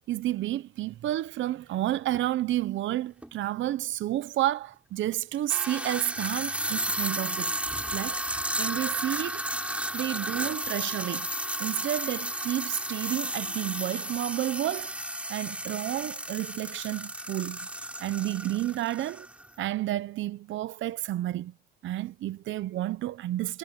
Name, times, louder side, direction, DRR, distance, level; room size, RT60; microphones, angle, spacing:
voice 1, 0.1-7.5 7.9-9.4 9.7-11.3 11.6-14.9 15.3-17.6 18.0-19.3 19.6-21.5 21.8-23.6, right 14 dB, 75° right, 0.8 m, -31 dB
sound 1, 2.1-2.2 3.2-3.3 5.3-19.5, right 1 dB, 5° right, 3.6 m, -33 dB
cardioid pair, 90°, 20 cm